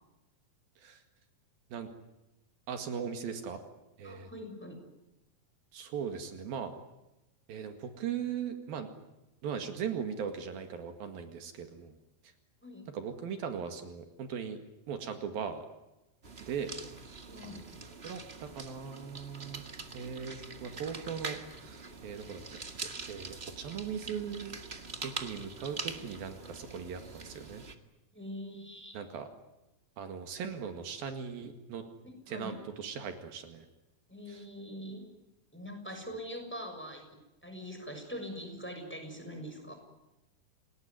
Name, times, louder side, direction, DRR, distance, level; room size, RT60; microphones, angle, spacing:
voice 1, 2.7-3.6 4.0-4.3 5.7-6.7 7.5-8.9 9.4-12.0 12.9-14.6 14.9-15.7 16.4-16.7 17.4-17.7 18.0-19.6 19.9-22.4 22.8-24.6 25.0-27.6 28.9-29.3 30.0-31.8 32.3-33.7 34.3-34.4, right 7 dB, 75° right, 7 dB, 3.8 m, -39 dB
voice 2, 4.0-4.8 12.6-12.9 17.3-17.6 28.1-29.0 32.0-32.6 34.1-35.1 35.5-37.1 37.4-39.7, equal, 5° left, 4 dB, 6.2 m, -43 dB
sound 1, 16.2-27.7, right 3 dB, 35° right, 1.0 m, -44 dB
29.0 x 19.5 x 9.6 m, 0.99 s
omnidirectional pair, 4.2 m